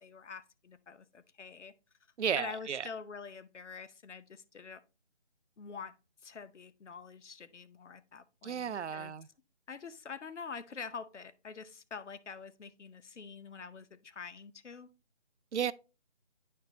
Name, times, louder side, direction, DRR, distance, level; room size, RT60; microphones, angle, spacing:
voice 1, 0.0-1.7 2.4-4.8 5.6-5.9 6.2-9.1 9.7-14.9, left 5 dB, 75° left, 0.8 m, -46 dB
voice 2, 2.2-2.9 8.4-9.3 15.5-15.7, right 8 dB, 70° right, 0.5 m, -33 dB
9.4 x 4.4 x 3.0 m
figure-of-eight pair, 180°, 35 cm